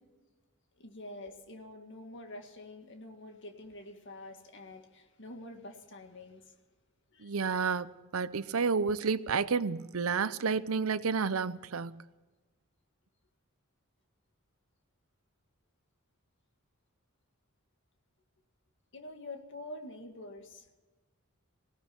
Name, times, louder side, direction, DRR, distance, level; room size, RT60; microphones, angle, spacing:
voice 1, 0.8-6.6 7.1-7.4 18.9-20.7, left 1 dB, 60° left, 2.0 m, -47 dB
voice 2, 7.2-12.0, right 5 dB, 70° right, 0.7 m, -30 dB
19.0 x 17.0 x 4.5 m
head